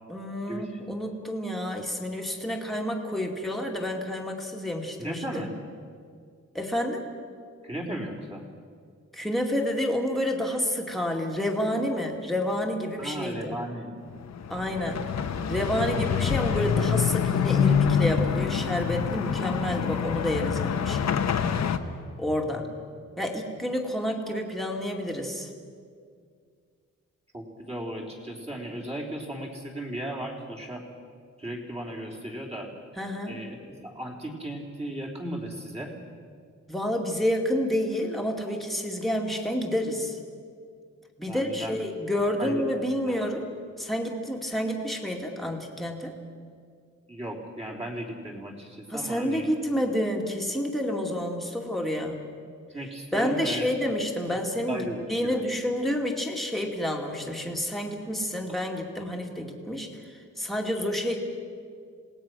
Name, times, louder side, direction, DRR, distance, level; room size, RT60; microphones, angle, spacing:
voice 1, 0.1-5.2 6.5-7.0 9.1-13.6 14.5-15.1 15.5-21.2 22.2-22.7 23.2-25.5 33.0-33.4 36.7-40.2 41.2-43.5 43.8-46.1 48.9-52.3 53.1-61.2, left 1 dB, ahead, 0 dB, 2.3 m, -29 dB
voice 2, 5.0-5.5 7.6-8.4 13.0-13.9 22.5-22.7 27.3-30.8 31.4-32.7 33.3-35.9 41.3-41.8 42.4-42.6 43.1-43.3 47.1-49.5 52.7-53.7 54.7-55.4, right 1 dB, 20° right, -2 dB, 3.5 m, -36 dB
sound 1, 14.1-21.8, left 7 dB, 65° left, 1.1 m, -26 dB
27.5 x 18.5 x 6.3 m, 2.2 s
wide cardioid pair, 150°, 30 cm